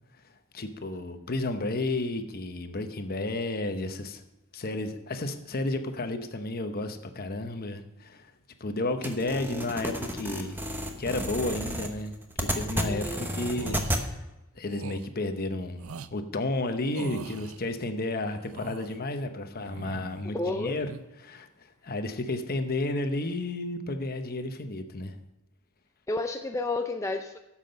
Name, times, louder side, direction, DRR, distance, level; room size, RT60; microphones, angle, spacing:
voice 1, 0.5-4.2 4.5-8.3 8.6-10.6 11.0-14.3 14.5-15.8 16.1-20.9 21.2-25.2, left 2 dB, 45° left, 7 dB, 0.9 m, -32 dB
sound 1, 9.0-14.0, equal, 10° right, 1.0 m, -32 dB
voice 2, 12.8-13.3 20.2-20.8 26.1-27.4, left 2 dB, 15° left, 4 dB, 0.4 m, -31 dB
sound 2, 13.5-13.9 14.7-15.1 15.8-16.1 16.9-17.6 18.3-19.0 19.6-20.3 20.6-21.0, right 5 dB, 70° right, 0.5 m, -42 dB
12.0 x 7.5 x 5.3 m, 0.98 s
head